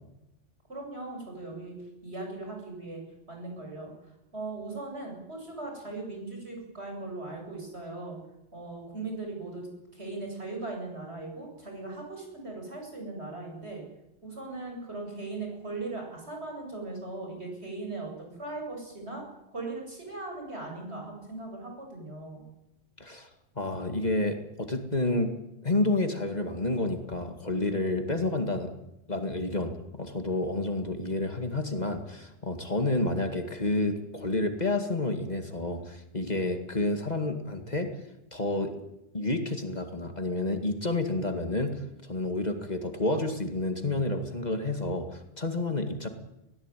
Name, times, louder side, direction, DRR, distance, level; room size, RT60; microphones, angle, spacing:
voice 1, 0.7-1.7 2.0-8.2 8.5-9.7 9.9-13.8 14.2-22.4, right 2 dB, 70° right, 1 dB, 8.2 m, -39 dB
voice 2, 23.0-23.3 23.6-25.3 25.6-28.7 29.1-37.9 38.3-38.7 39.1-46.1, left 2 dB, 40° left, 6 dB, 2.3 m, -29 dB
21.5 x 17.5 x 9.3 m, 0.90 s
omnidirectional pair, 1.2 m